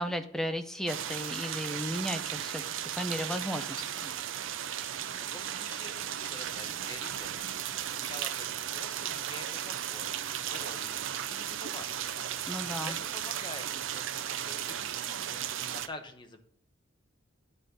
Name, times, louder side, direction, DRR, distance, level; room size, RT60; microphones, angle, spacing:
voice 1, 0.0-4.1 12.5-13.0, equal, ahead, 7 dB, 0.5 m, -35 dB
sound 1, 0.9-15.9, right 10 dB, 70° right, 0.5 m, -35 dB
voice 2, 5.2-7.5 7.8-10.1 10.4-11.0 11.3-12.3 12.8-16.4, left 2 dB, 20° left, 5 dB, 0.9 m, -47 dB
9.5 x 3.9 x 6.6 m, 0.67 s
head